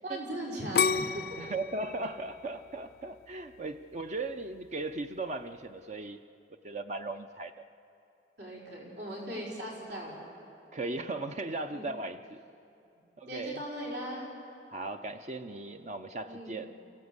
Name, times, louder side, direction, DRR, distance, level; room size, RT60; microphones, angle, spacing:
voice 1, 0.0-1.4 8.4-10.2 11.7-11.9 12.9-13.0 13.3-14.3 16.3-16.6, right 1 dB, 75° right, -3 dB, 5.4 m, -39 dB
sound 1, 0.8-3.7 4.2-4.7, left 6 dB, 60° left, 0.5 m, -31 dB
voice 2, 1.4-6.2 6.6-7.5 10.7-12.4 13.2-13.6 14.7-16.7, right 2 dB, 40° right, 8 dB, 0.6 m, -37 dB
28.5 x 16.5 x 8.0 m, 2.8 s
head